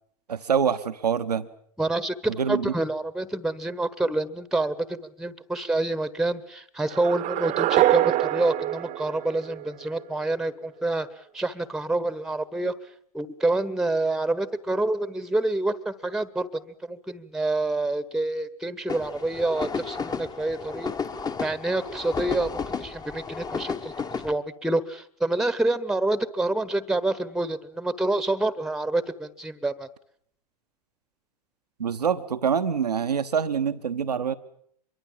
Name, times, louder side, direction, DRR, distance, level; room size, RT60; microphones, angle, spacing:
voice 1, 0.3-1.5 2.4-2.7 31.8-34.3, right 7 dB, 85° right, 9 dB, 1.1 m, -25 dB
voice 2, 1.8-11.1 11.3-12.7 13.1-20.9 21.4-22.5 22.8-23.9 24.2-29.9, right 2 dB, ahead, 16 dB, 1.1 m, -27 dB
sound 1, 6.9-10.0, right 14 dB, 40° right, 1.0 m, -25 dB
sound 2, 18.9-24.3, left 5 dB, 20° left, 1.2 m, -33 dB
25.0 x 23.0 x 7.5 m, 0.65 s
hypercardioid pair, 95°, 20 cm